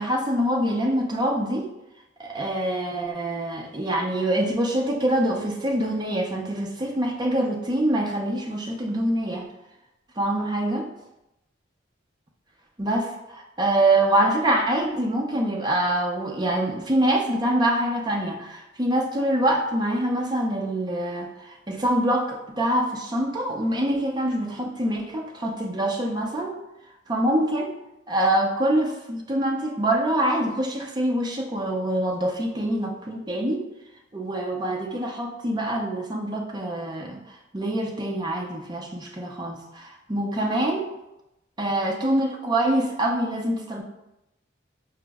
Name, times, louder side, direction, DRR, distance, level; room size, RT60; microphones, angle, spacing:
voice 1, 0.0-1.7 2.2-9.5 10.2-10.9 12.8-26.6 27.1-27.7 28.1-33.6 34.1-37.2 37.5-40.9 41.6-43.8, right 1 dB, 20° right, 0 dB, 0.5 m, -25 dB
4.5 x 2.0 x 3.4 m, 0.91 s
head